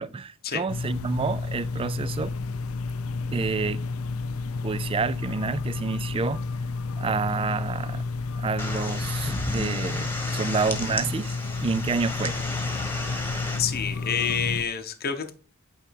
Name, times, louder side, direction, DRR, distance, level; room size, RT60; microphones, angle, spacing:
voice 1, 0.0-2.3 3.3-3.8 4.6-6.4 7.0-8.0 8.4-12.4, right 5 dB, 25° right, 0.3 m, -29 dB
sound 1, 0.7-14.6, left 3 dB, 85° left, 0.6 m, -31 dB
sound 2, 8.6-13.6, left 2 dB, 10° left, 1.3 m, -33 dB
voice 2, 13.6-15.3, left 7 dB, 45° left, 0.8 m, -28 dB
9.1 x 3.9 x 4.6 m
head